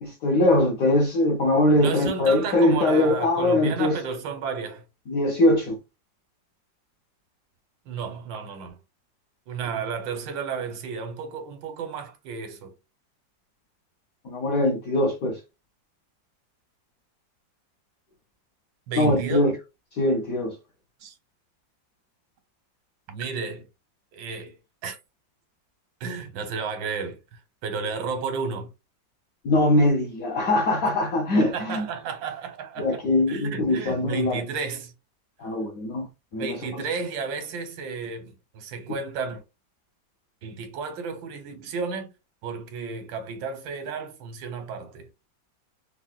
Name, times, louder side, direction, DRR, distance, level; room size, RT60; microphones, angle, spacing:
voice 1, 0.0-4.0 5.1-5.8 14.2-15.4 19.0-19.5 19.9-20.6 29.4-31.9 32.8-34.4 35.4-36.1 36.3-36.6, left 1 dB, 65° left, 0.9 m, -22 dB
voice 2, 1.8-4.8 7.8-8.8 9.5-12.7 18.9-19.4 21.0-21.2 23.1-23.6 24.1-24.6 24.8-25.0 26.0-28.7 31.4-33.0 33.3-34.9 36.3-39.4 40.4-42.1 42.4-45.1, right 5 dB, 90° right, 1.5 m, -32 dB
4.4 x 2.2 x 2.3 m
omnidirectional pair, 2.0 m